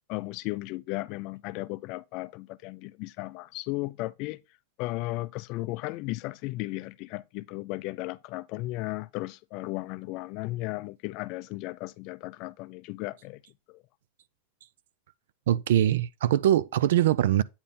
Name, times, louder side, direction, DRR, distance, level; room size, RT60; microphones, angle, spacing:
voice 1, 0.1-4.4 4.8-13.4 13.7-13.8, left 20 dB, 40° left, 0.4 m, -35 dB
voice 2, 15.5-17.4, right 12 dB, 80° right, 0.4 m, -22 dB
8.7 x 3.6 x 4.2 m
supercardioid pair, 165°, 0 cm